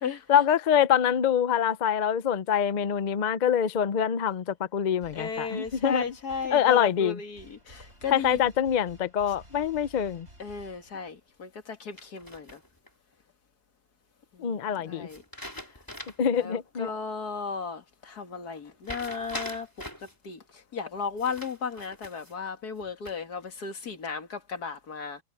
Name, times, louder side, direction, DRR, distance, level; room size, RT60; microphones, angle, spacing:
voice 1, 0.3-6.1 6.5-7.2 8.1-10.3 14.4-15.1 16.2-16.9, left 8 dB, 55° left, 0.5 m, -25 dB
sound 1, 5.0-11.3, right 1 dB, 40° right, 7.3 m, -54 dB
voice 2, 5.1-8.4 10.4-12.6 14.4-14.6 14.8-15.2 16.4-19.7 20.2-20.4 20.7-25.2, left 5 dB, 75° left, 2.5 m, -35 dB
sound 2, 12.0-12.9 15.1-16.4 16.8-16.9 18.8-20.1 21.2-22.4 22.8-23.4, left 1 dB, 10° left, 3.8 m, -42 dB
omnidirectional pair, 1.7 m